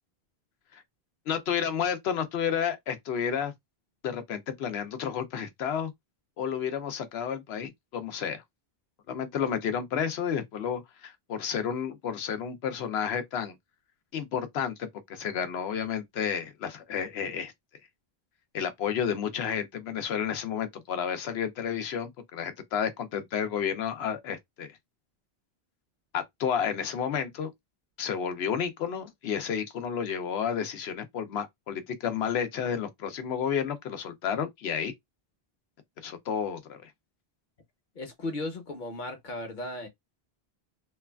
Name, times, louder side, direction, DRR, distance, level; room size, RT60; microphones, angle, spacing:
voice 1, 1.3-3.5 4.0-5.9 6.4-8.4 9.1-13.5 14.1-17.5 18.5-24.8 26.1-27.5 28.0-34.9 36.0-36.9, left 8 dB, 80° left, 0.9 m, -31 dB
voice 2, 37.9-39.9, left 2 dB, 50° left, 1.0 m, -36 dB
3.0 x 2.3 x 2.3 m
omnidirectional pair, 1.0 m